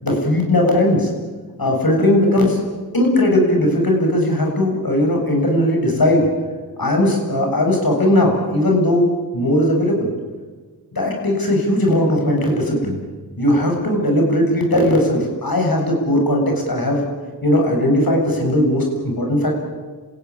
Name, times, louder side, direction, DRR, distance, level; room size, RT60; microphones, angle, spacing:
voice 1, 0.0-1.1 1.6-2.6 2.9-6.3 6.8-10.1 10.9-13.0 13.4-17.0 17.4-19.6, left 1 dB, 60° left, 1 dB, 7.6 m, -18 dB
30.0 x 15.5 x 9.9 m, 1.4 s
cardioid pair, 40°, 40 cm